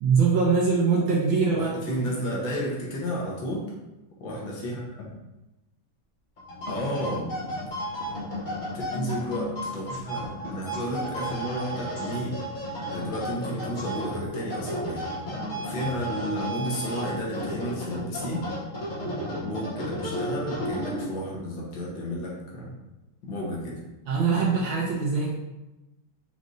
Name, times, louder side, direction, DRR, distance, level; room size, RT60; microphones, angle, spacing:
voice 1, 0.0-1.7 2.0-2.1 19.0-19.1 24.1-25.3, right 5 dB, 75° right, -4 dB, 1.4 m, -23 dB
voice 2, 1.5-3.7 4.2-5.2 6.7-7.3 7.6-7.7 8.7-12.4 12.9-15.0 15.6-18.5 19.4-22.7 23.2-23.8, equal, 70° left, -4 dB, 1.7 m, -32 dB
sound 1, 6.4-21.3, equal, 50° left, 0.5 m, -33 dB
5.1 x 3.1 x 2.6 m, 1.0 s
omnidirectional pair, 2.3 m